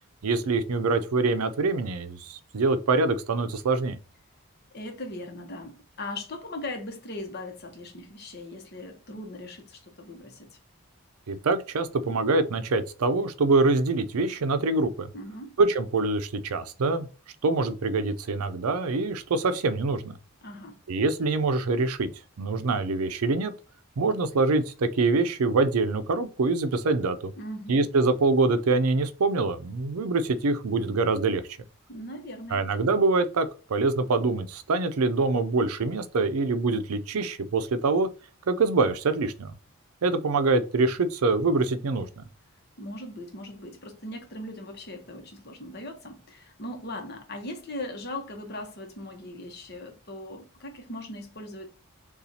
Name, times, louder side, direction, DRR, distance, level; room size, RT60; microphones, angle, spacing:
voice 1, 0.2-4.0 11.3-15.1 15.6-17.1 17.4-20.1 20.9-22.1 22.4-23.5 24.0-27.3 27.7-31.4 32.5-38.1 38.5-39.5 40.0-42.2, right 3 dB, 85° right, 0.5 m, -25 dB
voice 2, 4.7-10.5 15.1-15.6 20.4-20.8 27.4-27.8 31.9-32.6 42.8-51.7, left 1 dB, 45° left, 0.9 m, -39 dB
6.8 x 2.4 x 2.8 m
head